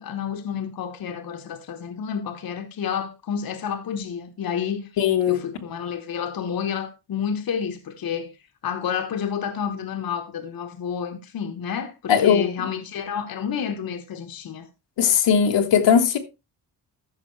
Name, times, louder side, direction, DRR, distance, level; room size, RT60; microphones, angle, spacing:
voice 1, 0.0-8.3 8.6-14.7, left 7 dB, 55° left, 1.2 m, -30 dB
voice 2, 5.0-5.4 12.1-12.4 15.0-16.2, left 8 dB, 80° left, 1.4 m, -18 dB
13.5 x 6.1 x 3.2 m
wide cardioid pair, 175°, 43 cm